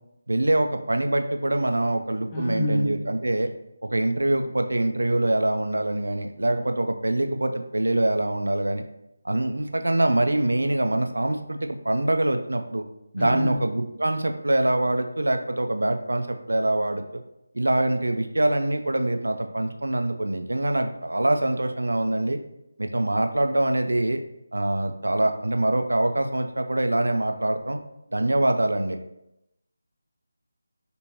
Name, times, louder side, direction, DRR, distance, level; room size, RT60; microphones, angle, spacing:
voice 1, 0.3-3.5 3.8-8.8 9.2-12.8 13.1-17.2 17.5-22.4 22.8-24.2 24.5-27.8 28.1-29.0, right 1 dB, 70° right, 6 dB, 0.4 m, -24 dB
voice 2, 2.3-3.0 13.2-13.5, equal, 15° left, -2 dB, 0.6 m, -26 dB
3.4 x 2.8 x 2.9 m, 0.86 s
figure-of-eight pair, 160°, 0 cm